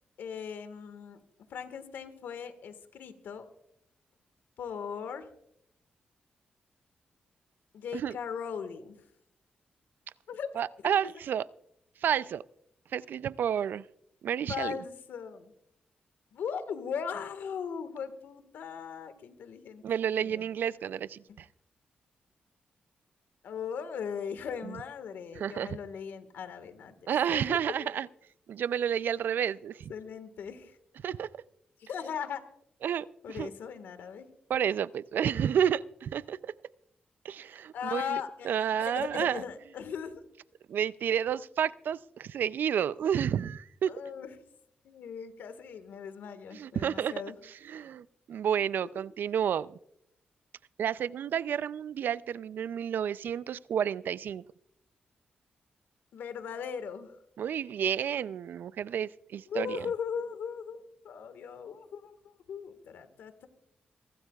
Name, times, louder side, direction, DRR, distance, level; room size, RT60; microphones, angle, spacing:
voice 1, 0.2-1.2 1.5-3.5 4.6-5.3 7.7-9.0 10.3-10.5 10.8-11.1 14.5-15.5 16.3-19.8 20.2-20.4 23.4-27.6 29.9-30.8 31.8-32.4 33.2-34.3 37.7-40.1 43.9-44.4 44.8-47.3 56.1-57.2 59.5-63.5, left 7 dB, 85° left, 10 dB, 1.6 m, -38 dB
voice 2, 10.6-11.5 12.0-12.4 12.9-13.9 14.2-14.8 19.8-21.5 24.6-24.8 25.4-25.8 27.1-28.1 28.5-29.9 31.0-31.3 32.8-33.5 34.5-36.5 37.2-38.2 38.4-39.4 40.7-43.9 46.5-47.1 47.7-49.8 50.8-54.4 57.4-59.9, right 9 dB, 75° right, 19 dB, 0.4 m, -30 dB
28.5 x 12.5 x 2.4 m, 0.73 s
cardioid pair, 65°, 3 cm